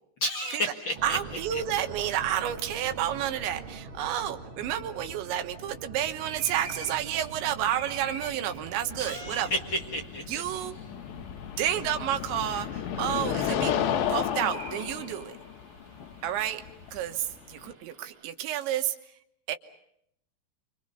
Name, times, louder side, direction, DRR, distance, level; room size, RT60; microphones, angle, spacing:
voice 1, 0.2-1.2 1.5-1.6 9.0-10.2, equal, 50° left, 1 dB, 1.4 m, -31 dB
sound 1, 0.9-10.1, right 3 dB, 70° right, 1.2 m, -44 dB
voice 2, 1.0-9.5 10.3-10.8 11.2-11.3 11.6-13.8 14.1-15.3 16.2-16.6 16.9-19.0 19.5-19.6, right 11 dB, 85° right, 7 dB, 3.5 m, -30 dB
sound 2, 6.3-18.3, right 3 dB, 45° right, 1.3 m, -48 dB
sound 3, 8.9-17.7, left 9 dB, 70° left, 2.6 m, -33 dB
28.5 x 26.0 x 5.5 m, 0.73 s
omnidirectional pair, 5.1 m